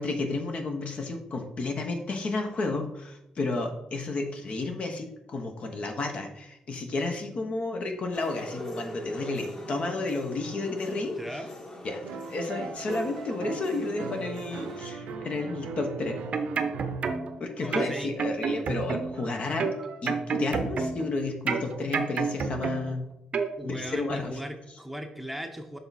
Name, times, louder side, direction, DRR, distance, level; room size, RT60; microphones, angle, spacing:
voice 1, 0.0-11.4 11.8-12.0 12.3-16.2 17.4-19.7 20.0-23.0 23.6-24.4, left 3 dB, 50° left, 4 dB, 1.1 m, -32 dB
jamaican singing in subway recorded far away, 8.1-14.8, left 1 dB, 30° left, 1.5 m, -43 dB
voice 2, 11.2-11.5 17.6-18.1 23.6-25.8, equal, 5° right, 4 dB, 0.8 m, -37 dB
sound 1, 12.0-17.3 19.2-20.1, right 4 dB, 90° right, 0.7 m, -39 dB
sound 2, 16.1-17.4 17.7-19.2 19.6-21.1 21.5-23.0 23.3-23.5, right 5 dB, 55° right, 0.7 m, -29 dB
6.8 x 3.5 x 4.1 m, 0.86 s
cardioid pair, 80°, 3 cm